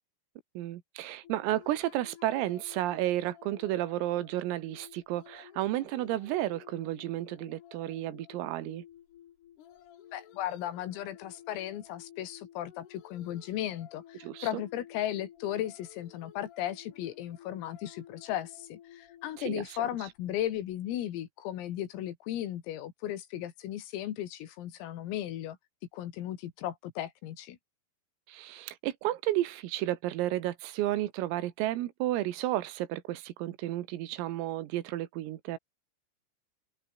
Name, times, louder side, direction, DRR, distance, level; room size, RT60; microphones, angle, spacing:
voice 1, 0.6-8.8 14.2-14.6 19.4-19.6 28.3-35.6, right 15 dB, 85° right, 4.2 m, -32 dB
sound 1, 1.2-20.8, left 11 dB, 60° left, 3.7 m, -54 dB
voice 2, 10.1-25.6 25.9-27.6, left 12 dB, 90° left, 4.9 m, -36 dB
omnidirectional pair, 5.9 m